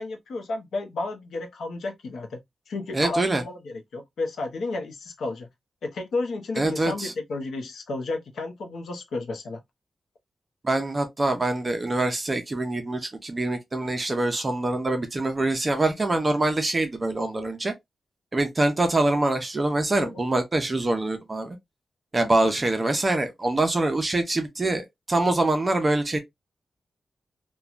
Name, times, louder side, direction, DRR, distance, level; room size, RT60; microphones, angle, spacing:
voice 1, 0.0-2.4 2.7-5.5 5.8-9.6 10.9-11.1 20.0-20.2, left 3 dB, 90° left, 0.7 m, -32 dB
voice 2, 2.9-3.4 6.6-7.1 10.6-17.7 18.3-21.6 22.1-26.2, right 2 dB, 25° right, 0.5 m, -24 dB
3.0 x 2.2 x 2.4 m
wide cardioid pair, 175°, 0 cm